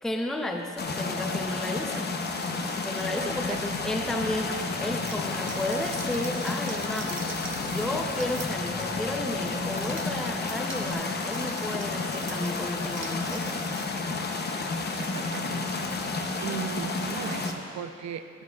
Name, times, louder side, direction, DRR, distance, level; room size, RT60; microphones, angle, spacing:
voice 1, 0.0-2.2 2.8-7.3 7.6-13.6, left 1 dB, ahead, 3 dB, 0.6 m, -33 dB
sound 1, 0.8-17.5, left 3 dB, 35° left, 0.8 m, -31 dB
sound 2, 3.0-10.9, left 2 dB, 20° right, 1.8 m, -46 dB
sound 3, 5.0-13.9, right 4 dB, 40° right, 0.9 m, -45 dB
voice 2, 15.0-16.0 16.4-18.4, right 9 dB, 65° right, 9 dB, 0.6 m, -38 dB
13.0 x 9.3 x 2.4 m, 2.6 s
cardioid pair, 90°, 30 cm